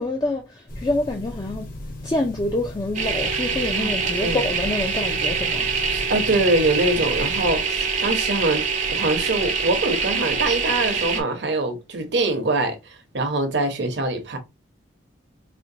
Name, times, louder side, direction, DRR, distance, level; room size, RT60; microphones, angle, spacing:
voice 1, 0.0-1.7 2.0-5.7, left 2 dB, 20° left, 0.4 m, -26 dB
sound 1, 0.7-7.5, left 1 dB, 50° left, 0.9 m, -36 dB
sound 2, 2.9-11.2, right 5 dB, 40° right, 0.6 m, -25 dB
voice 2, 5.9-14.4, right 2 dB, 65° right, 0.9 m, -24 dB
4.2 x 2.2 x 2.7 m
head